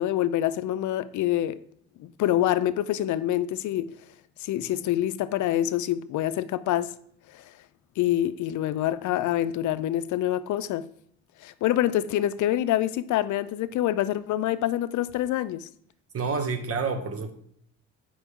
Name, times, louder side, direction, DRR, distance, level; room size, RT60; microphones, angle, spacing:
voice 1, 0.0-1.6 2.0-3.9 4.4-6.9 7.3-7.5 8.0-10.9 11.4-15.7, left 12 dB, 75° left, 0.5 m, -26 dB
voice 2, 16.1-17.3, right 4 dB, 50° right, 1.3 m, -28 dB
8.1 x 5.4 x 3.6 m
cardioid pair, 90°, 30 cm